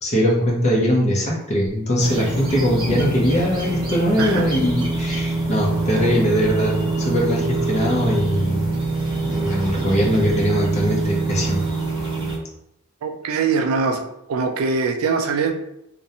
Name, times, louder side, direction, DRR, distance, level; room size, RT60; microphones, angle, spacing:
voice 1, 0.0-8.7 9.2-11.6, equal, 30° left, -2 dB, 0.6 m, -21 dB
sound 1, 2.0-12.4, right 2 dB, 20° right, 0.6 m, -25 dB
voice 2, 13.0-14.0 14.3-15.5, right 4 dB, 75° right, 5 dB, 0.3 m, -22 dB
2.5 x 2.1 x 2.7 m, 0.82 s
head